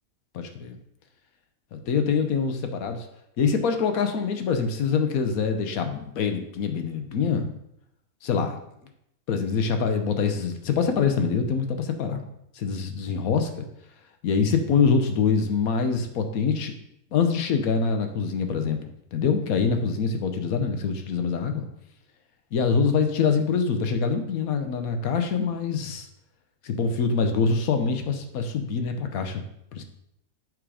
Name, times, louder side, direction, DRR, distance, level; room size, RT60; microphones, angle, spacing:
voice 1, 0.3-0.8 1.7-3.1 3.4-7.5 8.2-8.6 9.3-12.2 12.5-13.7 14.2-16.7 17.1-21.6 22.5-26.1 26.6-29.4 29.7-29.8, left 5 dB, 90° left, 6 dB, 1.3 m, -25 dB
7.8 x 3.8 x 4.9 m, 0.77 s
omnidirectional pair, 1.5 m